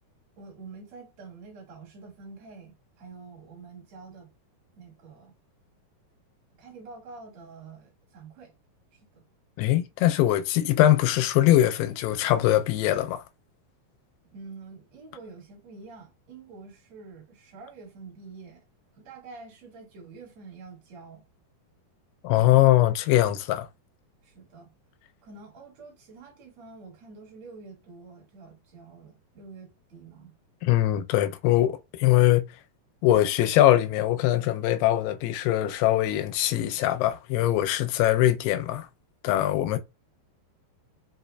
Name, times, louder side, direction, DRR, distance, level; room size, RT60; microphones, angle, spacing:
voice 1, 0.4-4.3 4.8-5.4 6.6-8.5 8.9-9.2 14.3-18.6 19.0-21.2 24.2-24.7 25.2-30.3, right 4 dB, 50° right, 2.5 m, -47 dB
voice 2, 9.6-13.2 22.2-23.7 30.6-32.4 33.0-38.9 39.2-39.8, left 14 dB, 90° left, 2.5 m, -22 dB
6.0 x 2.7 x 2.2 m
omnidirectional pair, 4.5 m